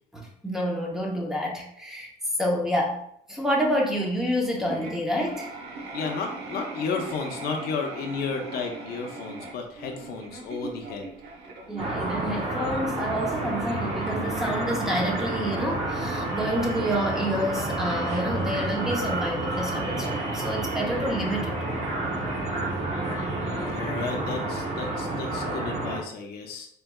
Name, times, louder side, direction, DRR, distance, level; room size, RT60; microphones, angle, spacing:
voice 1, 0.1-2.1 2.4-3.0 3.3-5.5 11.7-21.6, equal, 5° right, -1 dB, 0.9 m, -28 dB
sound 1, 4.1-4.2 4.6-20.8, right 3 dB, 85° right, 0.9 m, -42 dB
voice 2, 5.9-11.1 23.3-26.7, left 5 dB, 65° left, 2 dB, 0.7 m, -33 dB
sound 2, 11.8-26.0, right 2 dB, 40° right, 1.0 m, -30 dB
4.5 x 3.3 x 2.3 m, 0.70 s
cardioid pair, 110°, 17 cm